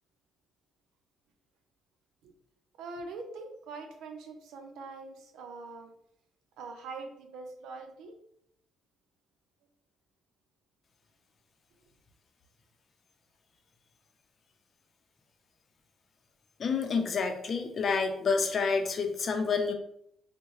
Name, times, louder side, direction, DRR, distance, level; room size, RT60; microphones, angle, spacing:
voice 1, 2.8-5.9 6.6-8.2, right 3 dB, 85° right, 5 dB, 0.6 m, -43 dB
voice 2, 16.6-19.7, left 5 dB, 45° left, 5 dB, 0.6 m, -28 dB
3.6 x 2.1 x 3.1 m, 0.71 s
cardioid pair, 90°, 0 cm